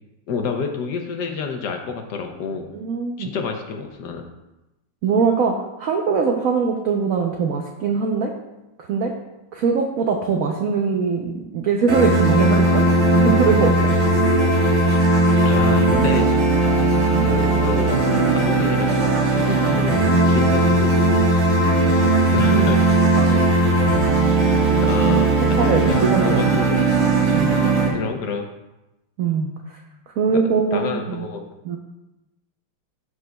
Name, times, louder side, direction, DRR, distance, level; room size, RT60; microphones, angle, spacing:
voice 1, 0.3-2.7 3.2-4.2 15.4-16.3 17.2-21.2 22.3-22.8 23.8-24.0 24.8-26.8 27.9-28.5 30.3-30.4 30.7-31.5, left 5 dB, 65° left, 4 dB, 1.2 m, -29 dB
voice 2, 2.7-3.3 5.0-8.3 8.8-9.1 9.5-12.8 13.2-13.8 19.6-19.8 21.6-21.8 22.5-22.8 23.2-23.7 25.5-26.6 27.3-27.6 29.2-29.5 30.2-31.2 31.6-31.8, right 5 dB, 80° right, 2 dB, 0.7 m, -22 dB
sound 1, 11.9-27.9, right 2 dB, 40° right, 1.3 m, -17 dB
12.5 x 5.0 x 2.2 m, 0.98 s
omnidirectional pair, 2.2 m